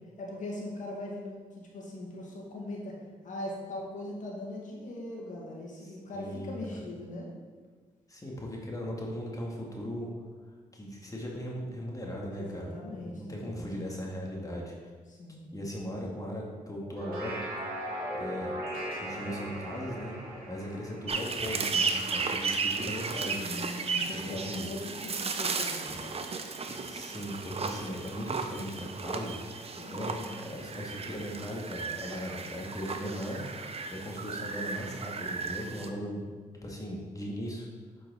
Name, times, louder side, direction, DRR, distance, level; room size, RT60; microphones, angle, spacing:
voice 1, 0.2-3.0 3.2-7.3 12.3-13.7 15.1-15.5 23.4-26.2 29.8-30.4, left 1 dB, 60° left, -3 dB, 2.1 m, -40 dB
voice 2, 5.8-6.8 8.1-10.1 10.7-14.7 15.5-17.4 17.8-17.9 18.1-18.5 19.0-20.2 20.5-23.5 24.1-24.7 25.9-26.0 26.7-36.2 36.6-37.7, equal, 25° left, -2 dB, 1.7 m, -38 dB
sound 1, 16.8-22.3, equal, 85° right, 1.5 m, -38 dB
sound 2, 21.1-35.9, right 4 dB, 40° right, 0.7 m, -35 dB
7.5 x 4.8 x 4.0 m, 1.4 s
supercardioid pair, 55°, 15 cm